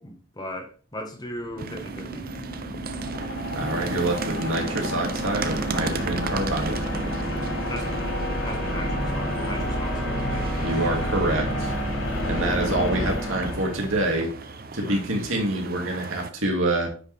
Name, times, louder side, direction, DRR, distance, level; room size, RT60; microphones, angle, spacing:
voice 1, 0.0-2.3 7.7-8.1 8.4-10.5 11.9-12.1 14.7-15.1, left 1 dB, 20° left, 1.5 m, -38 dB
sound 1, 1.4-14.4, equal, 75° left, 4.4 m, -29 dB
sound 2, 1.6-16.3, right 4 dB, 45° right, 0.7 m, -36 dB
voice 2, 3.5-6.8 10.6-11.7 12.3-14.3 14.7-16.9, right 1 dB, 75° right, 2.6 m, -26 dB
sound 3, 6.5-12.5, left 1 dB, 35° left, 2.6 m, -42 dB
9.5 x 5.4 x 3.6 m
head